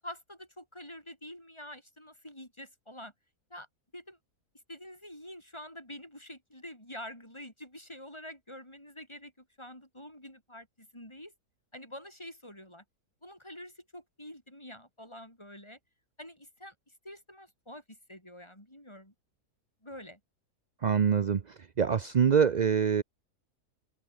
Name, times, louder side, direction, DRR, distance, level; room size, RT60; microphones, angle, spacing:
voice 1, 0.0-3.1 3.5-3.7 3.9-4.2 4.7-11.3 11.7-12.8 13.2-15.8 16.2-19.1 19.8-20.2, left 1 dB, 15° left, 7.8 m, -47 dB
voice 2, 20.8-21.4 21.8-23.0, right 7 dB, 65° right, 0.4 m, -24 dB
open air
omnidirectional pair, 1.7 m